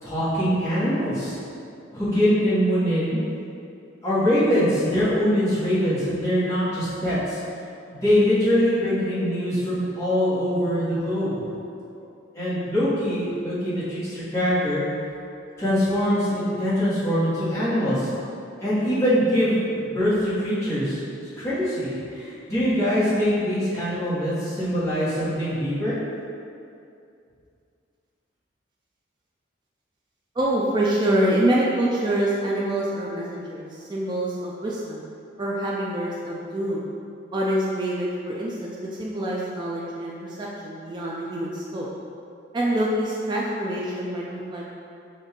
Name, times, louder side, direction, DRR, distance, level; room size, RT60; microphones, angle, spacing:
voice 1, 0.0-1.3 1.9-3.2 4.0-7.4 7.9-11.4 12.3-14.8 15.6-18.1 18.6-26.0, equal, 15° left, -13 dB, 1.5 m, -23 dB
voice 2, 30.4-35.0 35.4-36.8 37.3-41.9 42.5-44.7, right 1 dB, 20° right, -5 dB, 0.3 m, -26 dB
5.2 x 2.7 x 3.6 m, 2.5 s
head